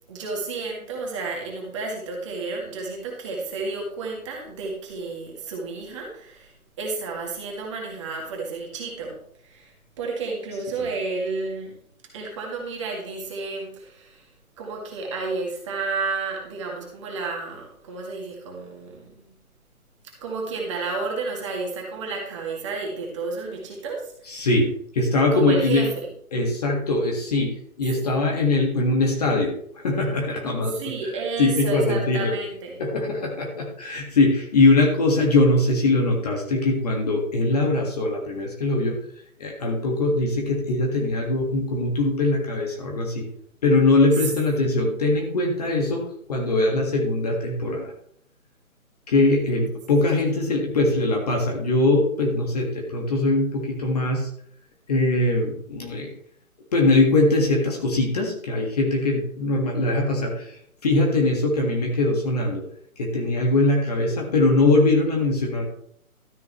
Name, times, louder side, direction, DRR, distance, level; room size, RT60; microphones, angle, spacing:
voice 1, 0.1-11.7 12.1-14.3 14.6-19.3 20.0-24.5 25.3-26.1 30.7-32.8, right 4 dB, 20° right, -1 dB, 2.2 m, -31 dB
voice 2, 24.3-24.7 24.9-25.8 26.3-27.5 27.8-30.8 31.4-32.3 32.8-39.0 39.4-43.2 43.6-46.0 46.3-47.9 49.1-54.3 54.9-56.1 56.7-60.6 60.8-62.6 63.0-65.7, left 2 dB, 25° left, 1 dB, 1.7 m, -21 dB
13.0 x 9.3 x 3.1 m, 0.65 s
figure-of-eight pair, 160°, 44 cm